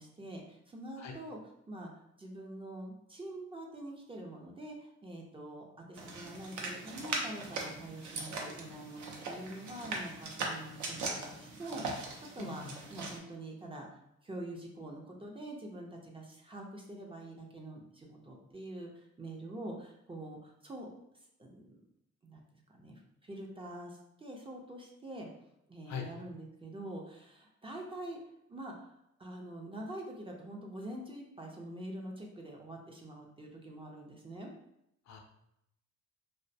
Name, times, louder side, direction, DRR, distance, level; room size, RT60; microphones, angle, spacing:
voice 1, 0.0-1.4 1.7-13.9 14.2-20.9 21.4-21.8 22.2-25.3 25.7-28.2 28.5-28.9 29.2-34.5, right 1 dB, 20° right, 0 dB, 0.4 m, -45 dB
sound 1, 6.0-13.2, right 3 dB, 75° right, 0.6 m, -40 dB
voice 2, 12.4-12.7 25.9-26.1 35.1-35.2, left 6 dB, 65° left, 3 dB, 0.5 m, -41 dB
2.4 x 2.1 x 2.6 m, 0.79 s
cardioid pair, 90°, 30 cm